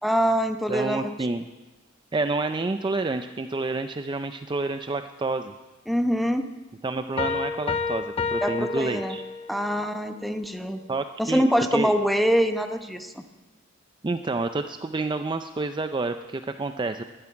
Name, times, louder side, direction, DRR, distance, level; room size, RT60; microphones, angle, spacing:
voice 1, 0.0-1.1 5.9-6.5 8.4-9.1 9.5-10.8 11.2-13.2, equal, ahead, 6 dB, 0.8 m, -24 dB
voice 2, 0.7-1.5 2.1-5.5 6.8-9.2 10.9-11.9 14.0-17.0, right 3 dB, 25° right, 8 dB, 0.4 m, -29 dB
Piano, 7.2-9.7, left 5 dB, 30° left, 0.8 m, -29 dB
12.0 x 10.5 x 9.7 m, 1.2 s
head